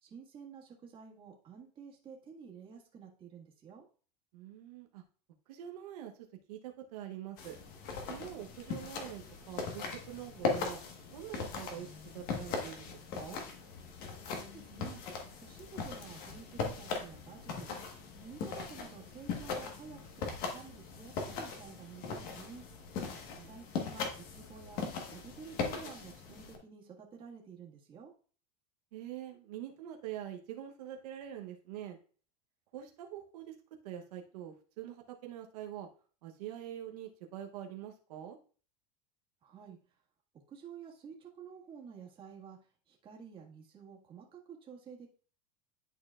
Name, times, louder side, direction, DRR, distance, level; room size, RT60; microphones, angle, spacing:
voice 1, 0.0-3.9 14.4-15.0 15.4-17.7 18.2-22.6 23.5-24.8 25.1-28.1 39.4-39.8 40.5-42.6 42.9-45.1, right 6 dB, 25° right, -1 dB, 1.7 m, -51 dB
voice 2, 4.3-5.0 5.5-6.1 6.5-7.6 8.1-10.8 11.1-11.9 12.1-13.4 23.1-23.5 28.9-32.0 32.7-33.5 33.8-35.9 36.2-38.4, right 11 dB, 80° right, 3 dB, 0.9 m, -45 dB
sound 1, 7.4-26.6, left 5 dB, 45° left, 1.4 m, -40 dB
11.0 x 4.4 x 2.4 m, 0.40 s
supercardioid pair, 150°, 20 cm